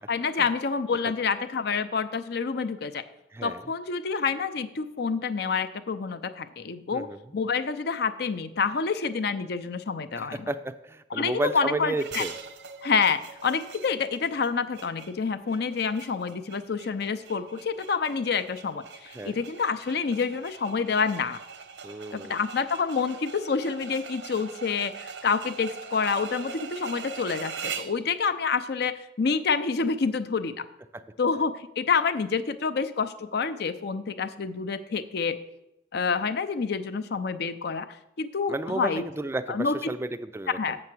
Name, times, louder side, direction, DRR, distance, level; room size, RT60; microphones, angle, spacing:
voice 1, 0.1-3.0 3.4-7.1 7.3-10.5 11.1-12.2 12.8-21.4 22.1-30.7 31.2-35.4 35.9-37.9 38.2-39.0 39.5-39.7 40.5-40.8, left 5 dB, 65° left, 11 dB, 0.5 m, -28 dB
voice 2, 10.2-12.3 19.1-19.3 21.8-22.4 30.9-31.0 38.5-40.6, right 2 dB, 15° right, 11 dB, 0.4 m, -32 dB
sound 1, 12.0-28.0, right 6 dB, 85° right, 0.8 m, -42 dB
7.5 x 6.8 x 6.1 m, 0.87 s
head